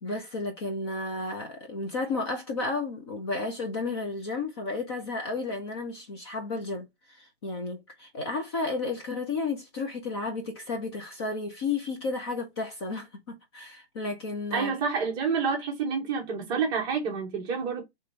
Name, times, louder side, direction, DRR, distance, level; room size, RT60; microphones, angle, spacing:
voice 1, 0.0-14.7, left 3 dB, 25° left, 0.7 m, -32 dB
voice 2, 14.5-17.8, right 5 dB, 15° right, 0.8 m, -28 dB
3.8 x 3.2 x 4.3 m
hypercardioid pair, 160°, 32 cm